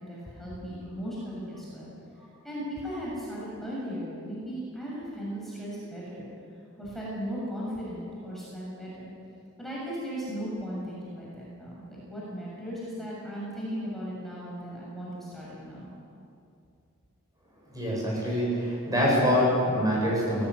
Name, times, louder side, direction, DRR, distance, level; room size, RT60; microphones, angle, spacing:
voice 1, 0.0-1.9 2.4-6.3 6.8-9.1 9.6-15.9, equal, ahead, -7 dB, 6.8 m, -37 dB
voice 2, 17.7-20.5, equal, 15° right, -4 dB, 7.4 m, -25 dB
22.5 x 18.5 x 9.7 m, 2.5 s
head